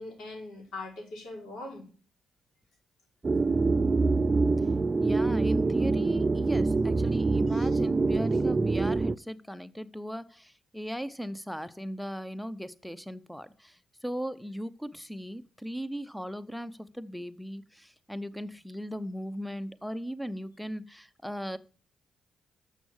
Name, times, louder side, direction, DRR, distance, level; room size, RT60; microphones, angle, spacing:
voice 1, 0.0-1.9 7.5-7.7 8.3-8.4, left 2 dB, 75° left, 4.8 m, -41 dB
sound 1, 3.2-9.1, right 3 dB, 35° right, 0.4 m, -25 dB
voice 2, 5.0-21.6, equal, 5° left, 0.7 m, -37 dB
7.2 x 6.0 x 7.1 m
cardioid pair, 70°, 0 cm